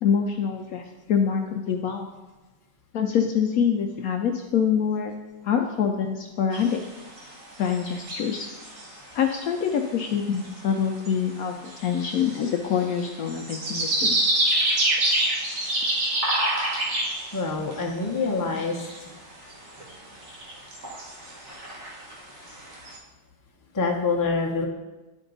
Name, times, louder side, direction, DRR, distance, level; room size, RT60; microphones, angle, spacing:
voice 1, 0.0-2.1 2.9-5.1 5.4-6.8 7.6-8.5 9.1-14.2, left 7 dB, 70° left, 3 dB, 0.8 m, -25 dB
sound 1, 6.5-9.0 9.3-9.4 9.5-10.1 10.3-10.5 10.9-11.1 11.7-17.8 18.2-18.3 18.5-19.1 19.5-19.9 20.2-23.0, right 1 dB, 50° right, 1.6 m, -27 dB
voice 2, 17.3-18.9 23.7-24.7, left 4 dB, 25° left, -1 dB, 0.4 m, -26 dB
10.5 x 4.5 x 3.9 m, 1.2 s
omnidirectional pair, 1.9 m